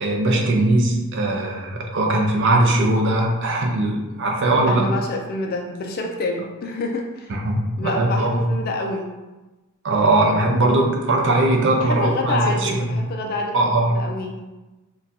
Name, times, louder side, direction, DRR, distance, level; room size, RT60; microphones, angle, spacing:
voice 1, 0.0-4.8 7.3-8.4 9.8-12.9 13.5-13.9, right 2 dB, 55° right, 1 dB, 0.5 m, -20 dB
voice 2, 4.7-7.3 7.8-9.1 11.8-13.5 13.8-14.4, left 2 dB, 40° left, 2 dB, 0.3 m, -27 dB
3.9 x 2.2 x 2.6 m, 1.1 s
head